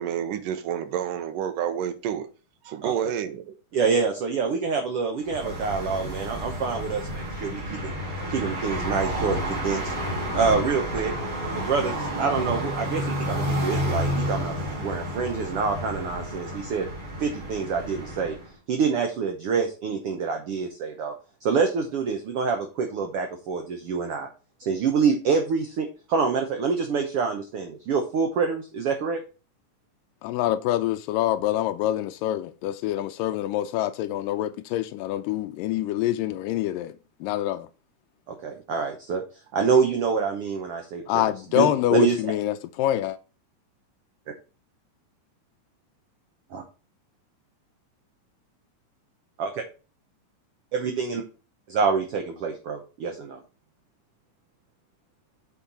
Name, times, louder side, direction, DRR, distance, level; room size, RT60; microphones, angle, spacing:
voice 1, 0.0-2.3 2.7-3.5, right 9 dB, 80° right, 2.6 m, -29 dB
voice 2, 3.7-7.9 8.3-9.9 10.3-11.1 11.5-16.9 17.2-18.3 18.7-21.1 21.4-24.3 24.6-29.2 38.3-39.2 39.5-42.2 46.5-46.6 49.4-49.6 50.7-51.2 51.7-53.4, right 5 dB, 65° right, 1.5 m, -26 dB
sound 1, 5.2-18.5, equal, 35° right, 3.5 m, -30 dB
voice 3, 30.2-36.9 37.2-37.7 41.1-43.2, left 13 dB, 85° left, 2.2 m, -26 dB
8.7 x 4.4 x 5.5 m
omnidirectional pair, 3.8 m